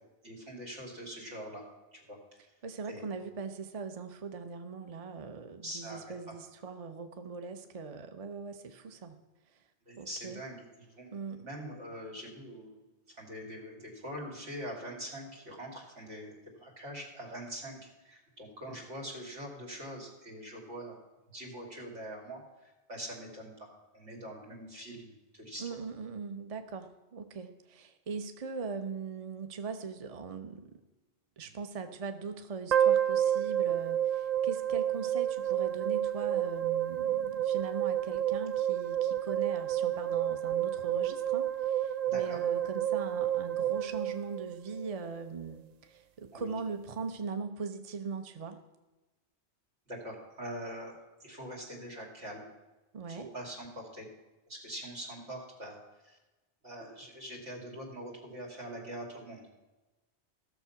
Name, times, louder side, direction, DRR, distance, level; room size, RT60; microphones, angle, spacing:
voice 1, 0.2-2.5 2.9-3.0 5.6-6.4 9.8-21.0 21.3-23.7 23.9-25.6 42.0-42.4 46.3-46.5 49.9-52.5 53.1-54.1 54.5-56.2 56.6-59.4, equal, 85° right, 0 dB, 3.3 m, -44 dB
voice 2, 2.6-9.2 9.5-9.6 10.0-10.4 11.1-11.5 25.6-30.8 31.4-48.6 52.9-53.3, right 5 dB, 35° right, 8 dB, 0.8 m, -40 dB
sound 1, 32.7-44.9, right 11 dB, 65° right, 0.4 m, -30 dB
15.0 x 6.8 x 5.8 m, 1.1 s
omnidirectional pair, 1.2 m